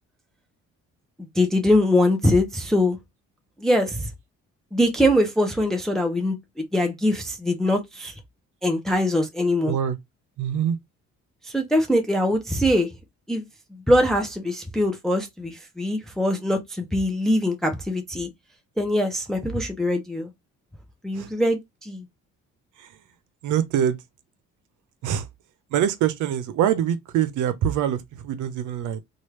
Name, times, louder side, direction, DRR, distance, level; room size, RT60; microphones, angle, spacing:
voice 1, 1.2-3.0 3.6-4.1 4.7-8.1 8.6-9.8 11.4-12.9 13.3-13.4 13.9-18.3 18.8-20.3 21.0-22.1, left 1 dB, ahead, 0.6 m, -22 dB
voice 2, 10.4-10.8 21.2-21.3 23.4-24.0 25.0-25.2 25.7-29.0, right 10 dB, 80° right, 0.6 m, -24 dB
3.1 x 2.4 x 3.0 m
cardioid pair, 90°, 30 cm